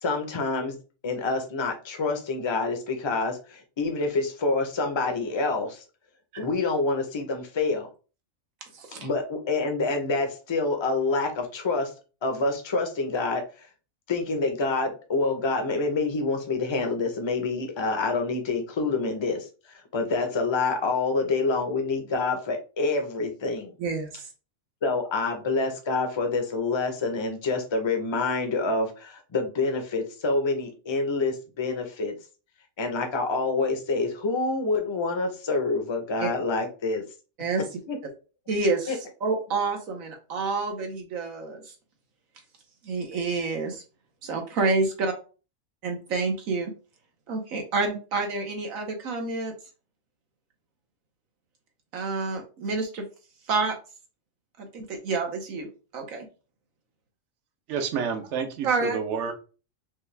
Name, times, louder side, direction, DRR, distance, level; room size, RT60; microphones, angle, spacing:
voice 1, 0.0-5.8 6.4-7.9 9.0-11.9 12.2-13.7 14.1-19.5 19.9-23.7 24.8-32.2 32.8-37.0 37.9-38.0 38.9-39.0, left 3 dB, 30° left, 4 dB, 0.6 m, -27 dB
voice 2, 23.8-24.3 36.2-36.3 37.4-37.6 38.5-38.9 39.2-41.6 42.8-43.8 44.2-45.1 45.8-46.7 47.3-49.5 51.9-53.0 53.5-53.7 54.6-55.7 55.9-56.3 58.6-59.0, right 3 dB, 85° right, 3 dB, 1.4 m, -28 dB
voice 3, 57.7-59.3, right 6 dB, 65° right, 6 dB, 1.0 m, -29 dB
5.3 x 2.3 x 3.2 m, 0.34 s
omnidirectional pair, 1.4 m